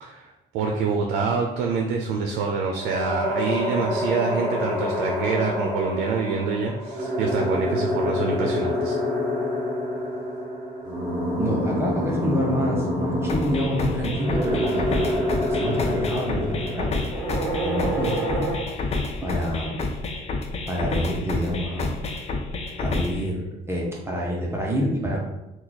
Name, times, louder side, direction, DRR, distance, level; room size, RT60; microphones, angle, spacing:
voice 1, 0.0-9.0, right 4 dB, 80° right, 1 dB, 0.5 m, -26 dB
sound 1, 2.8-18.6, left 1 dB, 40° right, 1.4 m, -27 dB
voice 2, 11.4-17.1 17.6-18.5 19.2-19.8 20.7-22.0 22.8-25.2, equal, 15° right, -3 dB, 0.7 m, -27 dB
sound 2, 13.3-23.3, left 3 dB, 40° left, 0.5 m, -29 dB
2.9 x 2.3 x 3.8 m, 0.97 s
cardioid pair, 110°, 17 cm